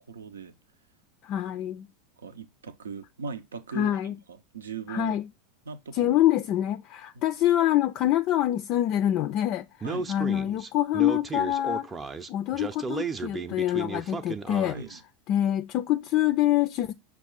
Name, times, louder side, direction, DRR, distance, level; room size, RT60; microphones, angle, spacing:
voice 1, 0.1-0.5 2.2-4.0 4.3-5.2 5.7-6.2 7.1-7.2 9.8-10.1 14.7-15.0, right 5 dB, 85° right, 0.6 m, -39 dB
voice 2, 1.2-1.9 3.7-4.1 4.9-5.3 5.9-9.7 10.1-11.9 12.3-14.8 15.3-16.9, left 13 dB, 50° left, 0.4 m, -25 dB
Speech, 9.8-15.0, right 4 dB, 20° right, 0.6 m, -34 dB
6.0 x 2.4 x 3.7 m
hypercardioid pair, 90°, 0 cm